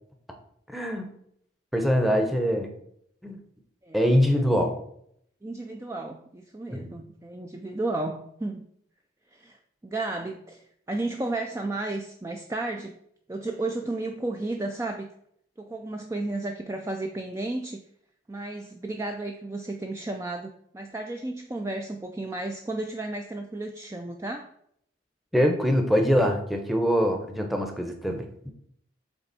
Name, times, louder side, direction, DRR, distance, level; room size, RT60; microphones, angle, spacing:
voice 1, 0.7-1.1 1.7-2.7 3.2-3.4 3.9-4.8 6.7-6.9 25.3-28.5, equal, ahead, 3 dB, 0.8 m, -23 dB
voice 2, 5.4-8.7 9.3-9.6 9.8-12.9 13.3-15.1 15.6-17.8 18.3-24.5, right 2 dB, 15° right, 3 dB, 0.4 m, -33 dB
7.9 x 3.4 x 4.1 m, 0.70 s
head